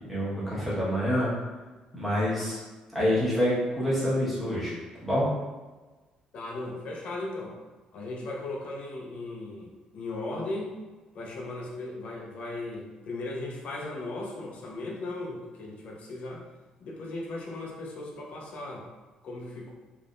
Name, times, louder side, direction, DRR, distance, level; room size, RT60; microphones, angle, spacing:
voice 1, 0.1-1.3 1.9-2.6 2.9-4.7 5.0-5.3, equal, ahead, -9 dB, 1.4 m, -26 dB
voice 2, 6.3-7.6 7.9-10.7 11.1-16.4 16.8-18.9 19.2-19.7, left 2 dB, 60° left, -1 dB, 0.7 m, -37 dB
3.4 x 3.3 x 2.6 m, 1.2 s
cardioid pair, 120°, 2 cm